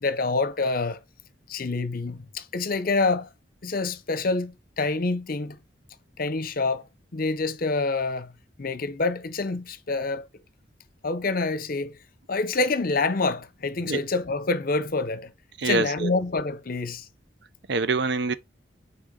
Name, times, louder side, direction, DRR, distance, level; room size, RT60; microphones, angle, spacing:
voice 1, 0.0-1.0 1.5-3.3 3.6-5.6 6.2-6.9 7.1-8.3 8.6-10.3 11.0-12.0 12.3-15.3 15.6-17.1, left 3 dB, 50° left, 0.7 m, -27 dB
voice 2, 15.6-16.1 17.7-18.4, right 4 dB, 60° right, 0.7 m, -25 dB
6.3 x 4.5 x 3.8 m
head